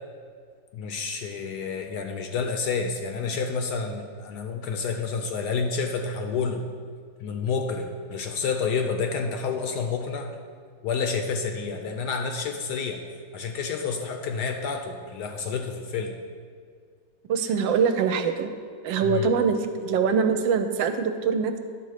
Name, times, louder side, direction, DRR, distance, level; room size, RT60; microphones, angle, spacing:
voice 1, 0.7-6.6 7.2-10.3 10.8-13.0 13.3-16.1 19.0-19.3, left 5 dB, 70° left, 4 dB, 1.1 m, -29 dB
voice 2, 17.3-18.5 18.8-21.6, right 6 dB, 75° right, 8 dB, 1.3 m, -23 dB
10.0 x 4.1 x 6.5 m, 2.1 s
omnidirectional pair, 2.1 m